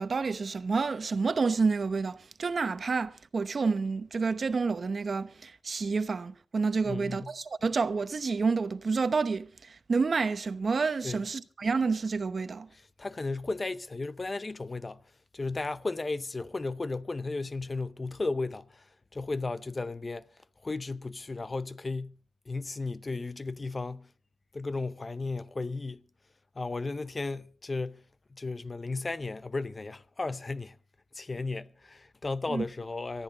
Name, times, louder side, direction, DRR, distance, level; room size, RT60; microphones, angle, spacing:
voice 1, 0.0-12.7 32.5-32.6, right 4 dB, 50° right, 0.9 m, -29 dB
voice 2, 6.8-7.3 11.0-11.2 13.0-15.0 15.3-18.8 19.1-20.2 20.6-22.2 22.5-24.1 24.5-26.0 26.6-28.0 28.3-30.8 31.1-33.2, left 3 dB, 30° left, 0.6 m, -34 dB
19.0 x 13.5 x 4.1 m
wide cardioid pair, 100°, 0 cm